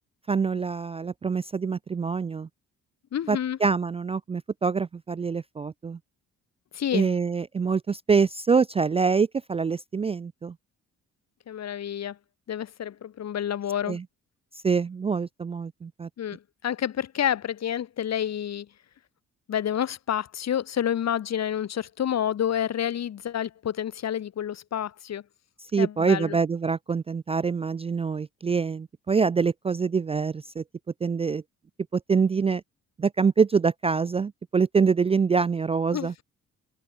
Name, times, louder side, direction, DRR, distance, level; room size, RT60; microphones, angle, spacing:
voice 1, 0.3-2.5 3.3-6.0 6.9-10.5 13.9-14.0 14.6-16.1 25.7-30.6 31.0-31.4 31.9-32.6 33.0-36.1, right 5 dB, 20° right, 0.3 m, -25 dB
voice 2, 3.1-3.6 6.7-7.1 11.5-12.2 12.5-14.0 16.2-18.7 19.5-25.2 25.8-26.4 35.9-36.2, left 10 dB, 60° left, 2.8 m, -29 dB
cardioid pair, 90°, 30 cm